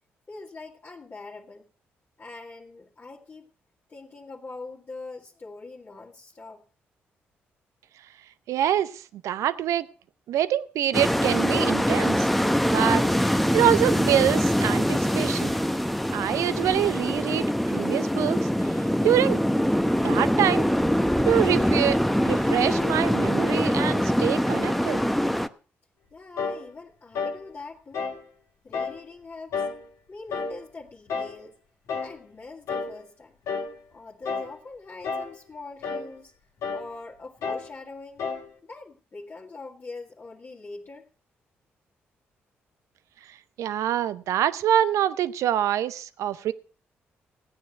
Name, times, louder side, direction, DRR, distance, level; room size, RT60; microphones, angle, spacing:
voice 1, 0.3-1.7 2.2-3.5 3.9-6.6 26.1-28.1 28.6-29.7 30.1-31.6 32.0-33.4 33.9-36.3 36.7-38.2 38.6-41.1, left 3 dB, 40° left, 2.0 m, -43 dB
voice 2, 8.5-9.9 10.3-12.3 12.7-15.5 16.1-18.5 19.0-19.4 20.0-20.7 21.3-25.0 43.6-46.5, right 11 dB, 70° right, 0.6 m, -25 dB
sound 1, 10.9-25.5, equal, ahead, 0.8 m, -23 dB
sound 2, 26.4-26.7 27.1-27.4 27.9-28.2 28.7-29.0 29.5-29.8 30.3-30.6 31.1-31.4 31.9-32.2 32.7-33.0 33.5-33.8 34.3-34.6 35.0-35.4 35.8-36.1 36.6-36.9 37.4-37.7 38.2-38.5, left 5 dB, 70° left, 1.7 m, -31 dB
14.5 x 9.3 x 5.7 m
hypercardioid pair, 45°, 5 cm